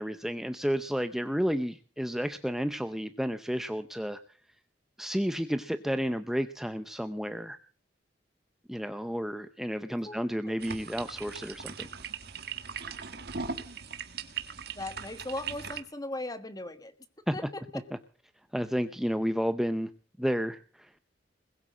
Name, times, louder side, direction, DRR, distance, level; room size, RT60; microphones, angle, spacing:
voice 1, 0.0-4.2 5.0-7.6 8.7-11.9 17.3-17.4 18.5-19.9 20.2-20.9, equal, ahead, 10 dB, 0.7 m, -31 dB
voice 2, 10.0-10.6 14.7-16.9 17.3-17.8, left 2 dB, 20° left, 11 dB, 1.4 m, -38 dB
sound 1, 10.6-15.8, right 6 dB, 60° right, 1.7 m, -39 dB
21.0 x 8.2 x 7.4 m, 0.41 s
head